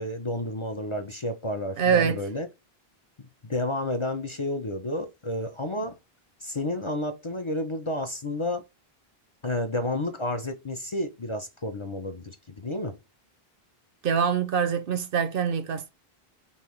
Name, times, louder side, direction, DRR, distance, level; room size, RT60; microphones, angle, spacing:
voice 1, 0.0-2.5 3.2-6.0 6.4-8.6 9.4-13.0, left 1 dB, 35° left, 0.6 m, -31 dB
voice 2, 1.8-2.2 14.0-15.9, right 7 dB, 65° right, 0.8 m, -24 dB
5.5 x 2.6 x 3.1 m
omnidirectional pair, 1.0 m